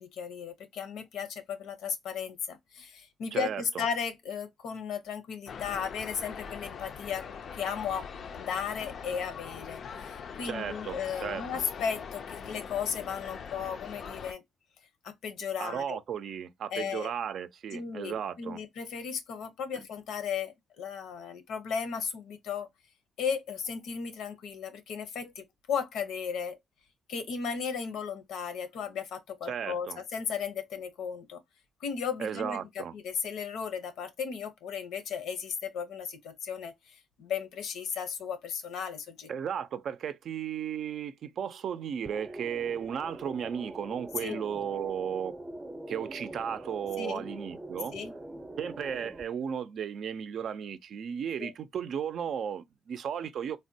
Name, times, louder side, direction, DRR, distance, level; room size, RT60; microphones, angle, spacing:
voice 1, 0.0-7.2 7.5-8.1 8.3-14.4 15.0-16.0 16.7-17.1 17.7-22.7 23.2-26.6 27.1-31.4 31.8-39.3 44.2-44.4 47.0-47.3 47.9-48.1 51.4-51.5, left 7 dB, 80° left, 0.7 m, -35 dB
voice 2, 3.3-3.8 10.4-11.4 15.6-18.6 19.8-19.9 29.5-30.0 32.2-32.9 39.3-45.3 45.9-47.9 48.6-53.6, right 8 dB, 65° right, 0.4 m, -35 dB
sound 1, 5.5-14.3, left 6 dB, 55° left, 0.4 m, -42 dB
sound 2, 42.1-49.2, right 2 dB, 15° right, 0.6 m, -43 dB
3.4 x 2.1 x 2.6 m
cardioid pair, 90°, 0 cm